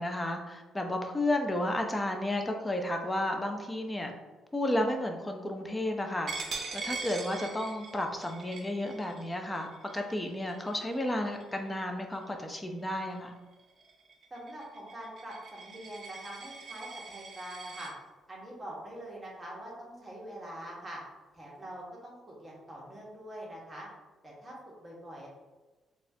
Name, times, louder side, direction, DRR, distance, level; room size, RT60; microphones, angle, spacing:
voice 1, 0.0-4.1 4.5-6.3 6.7-9.7 9.9-13.4, left 1 dB, 15° left, 4 dB, 0.5 m, -32 dB
Coin (dropping), 6.3-11.7 12.1-12.4 12.8-17.9, right 4 dB, 55° right, 0.6 m, -43 dB
voice 2, 14.3-17.9 18.3-21.0 21.3-23.9 24.2-24.6 24.8-25.3, right 1 dB, 15° right, -4 dB, 1.2 m, -44 dB
4.0 x 2.4 x 2.7 m, 1.2 s
cardioid pair, 90°, 0 cm